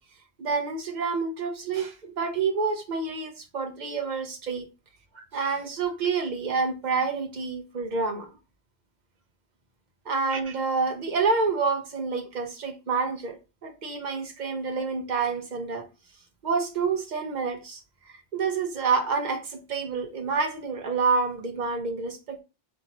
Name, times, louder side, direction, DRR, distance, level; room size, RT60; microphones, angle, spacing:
voice 1, 0.4-4.7 5.1-8.3 10.1-15.9 16.4-22.4, right 4 dB, 45° right, 0.8 m, -28 dB
4.6 x 2.7 x 2.9 m
omnidirectional pair, 1.1 m